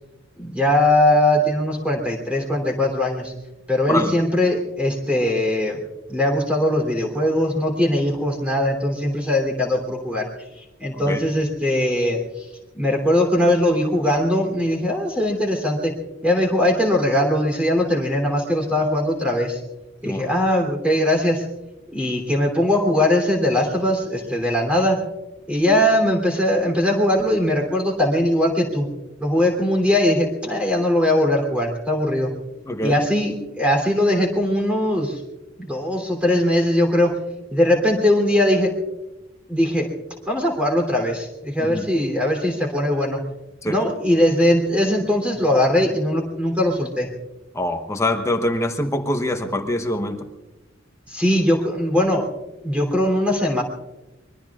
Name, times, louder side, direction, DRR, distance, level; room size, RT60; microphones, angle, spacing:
voice 1, 0.4-3.3 3.7-5.8 6.1-10.3 10.6-12.5 12.7-15.9 16.2-19.6 20.0-21.4 21.9-25.0 25.5-28.9 29.2-32.3 32.8-35.2 35.6-37.2 37.5-38.7 39.5-39.9 40.3-43.2 43.6-47.1 51.1-52.3 52.6-53.6, left 1 dB, 5° right, 1 dB, 3.1 m, -20 dB
voice 2, 3.9-4.2 10.9-11.2 20.0-20.3 32.7-33.0 41.6-41.9 43.6-43.8 47.5-50.3, left 1 dB, 15° left, 6 dB, 1.0 m, -24 dB
25.0 x 22.5 x 2.4 m, 1.0 s
head